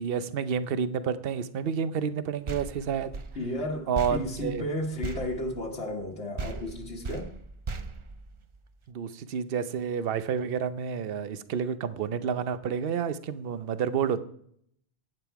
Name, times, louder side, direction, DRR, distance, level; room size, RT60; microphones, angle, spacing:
voice 1, 0.0-3.1 3.9-4.7 8.9-14.2, right 7 dB, 60° right, 13 dB, 0.9 m, -29 dB
sound 1, 2.5-6.1 6.4-8.8, right 4 dB, 35° right, 0.5 m, -38 dB
voice 2, 3.4-7.3, left 1 dB, 75° left, -1 dB, 1.6 m, -33 dB
11.0 x 9.0 x 4.6 m, 0.66 s
omnidirectional pair, 1.1 m